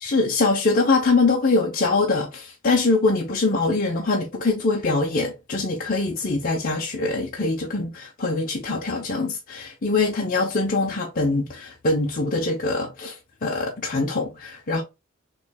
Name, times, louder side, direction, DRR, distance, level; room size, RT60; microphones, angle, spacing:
voice 1, 0.0-13.1 13.4-14.8, left 3 dB, 45° left, 0.7 m, -23 dB
6.2 x 3.2 x 2.3 m
head